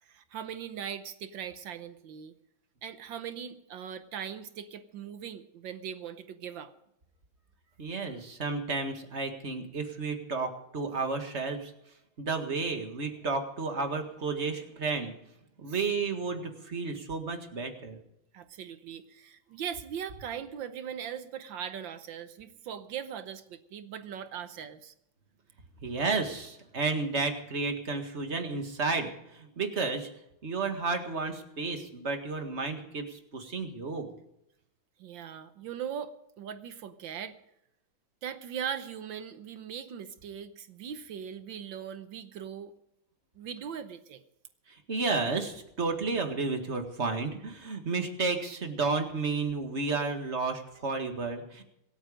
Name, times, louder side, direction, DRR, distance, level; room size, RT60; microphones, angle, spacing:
voice 1, 0.0-2.3 2.8-6.7 15.7-15.8 18.3-24.9 35.0-37.4 38.2-42.7 43.3-44.2, right 8 dB, 70° right, 11 dB, 1.5 m, -40 dB
voice 2, 7.8-11.7 12.2-15.1 15.6-18.0 25.8-30.1 30.4-34.1 44.7-51.6, right 4 dB, 35° right, 5 dB, 2.0 m, -32 dB
25.0 x 9.0 x 5.1 m, 0.80 s
omnidirectional pair, 2.2 m